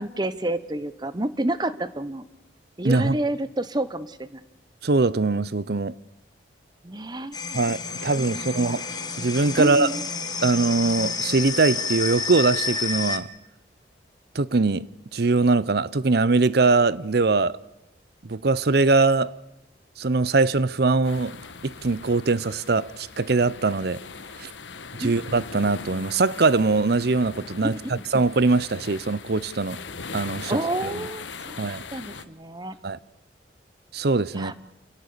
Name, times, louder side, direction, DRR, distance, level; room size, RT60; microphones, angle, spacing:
voice 1, 0.0-2.2 2.8-4.4 6.8-7.6 8.1-8.8 9.6-10.1 25.0-25.1 27.6-28.0 30.5-32.8 34.3-34.5, right 1 dB, 25° right, 1.1 m, -29 dB
voice 2, 2.8-3.2 4.8-5.9 7.5-8.9 9.2-9.9 10.4-13.3 14.3-14.9 15.1-17.6 18.2-19.4 20.0-21.4 21.6-24.0 24.4-24.5 25.0-27.8 28.1-29.8 30.1-30.9 31.6-31.8 32.8-33.0 33.9-34.5, right 3 dB, 60° right, 0.7 m, -22 dB
sound 1, 7.3-13.2, left 5 dB, 20° left, 1.3 m, -30 dB
sound 2, 7.8-13.0, right 3 dB, 80° right, 2.0 m, -43 dB
sound 3, 21.0-32.2, left 5 dB, 85° left, 1.2 m, -40 dB
29.0 x 17.5 x 6.8 m
head